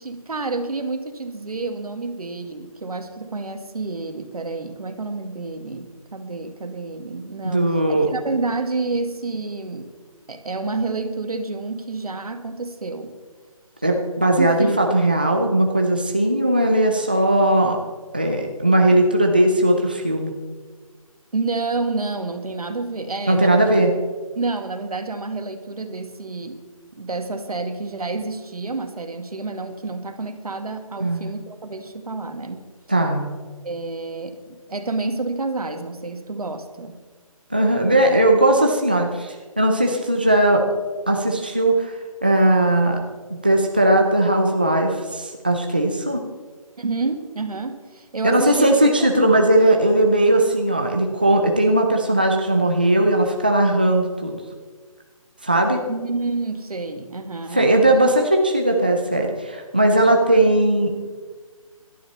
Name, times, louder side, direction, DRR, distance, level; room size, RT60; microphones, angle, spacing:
voice 1, 0.0-9.9 10.3-13.1 14.2-14.7 21.3-23.7 24.4-26.6 26.9-32.6 33.6-37.0 46.8-49.5 55.9-57.7, right 3 dB, 85° right, 7 dB, 1.9 m, -29 dB
voice 2, 7.4-8.1 13.8-17.8 18.1-20.3 23.3-23.9 31.0-31.3 32.9-33.3 37.5-40.6 41.1-43.0 43.4-46.2 48.2-54.4 55.4-55.8 57.5-61.0, right 1 dB, 15° right, 2 dB, 0.5 m, -18 dB
17.0 x 12.0 x 4.2 m, 1.4 s
hypercardioid pair, 180°, 19 cm